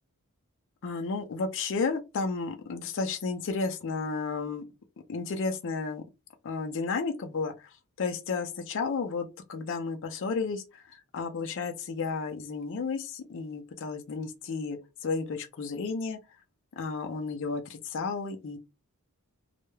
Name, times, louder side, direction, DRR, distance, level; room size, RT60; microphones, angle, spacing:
voice 1, 0.8-4.6 5.1-6.0 6.4-16.2 16.8-18.6, left 4 dB, 55° left, 0.4 m, -32 dB
2.2 x 2.1 x 3.1 m
head